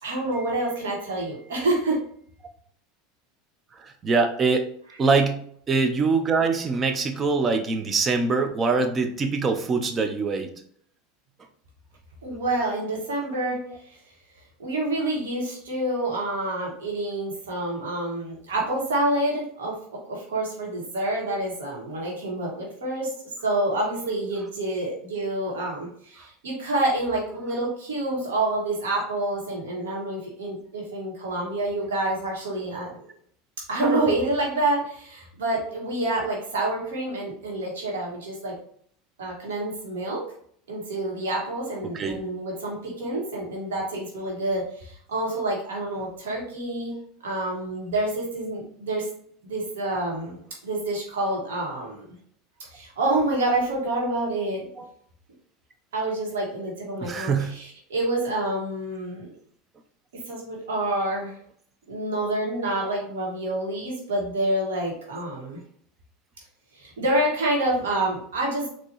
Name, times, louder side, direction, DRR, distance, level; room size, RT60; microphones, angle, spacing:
voice 1, 0.0-2.0 12.2-14.0 14.6-19.8 20.1-23.1 23.4-33.0 33.7-38.5 39.2-40.2 40.7-47.0 47.2-49.1 49.4-52.2 52.6-54.7 55.9-59.3 60.3-61.4 61.9-65.6 66.7-68.7, right 1 dB, 90° right, -2 dB, 1.8 m, -28 dB
voice 2, 3.7-4.7 5.0-10.5 41.9-42.2 54.8-54.9 57.0-57.5, right 4 dB, 30° right, 6 dB, 0.6 m, -23 dB
4.4 x 2.9 x 3.1 m, 0.62 s
hypercardioid pair, 105°, 0 cm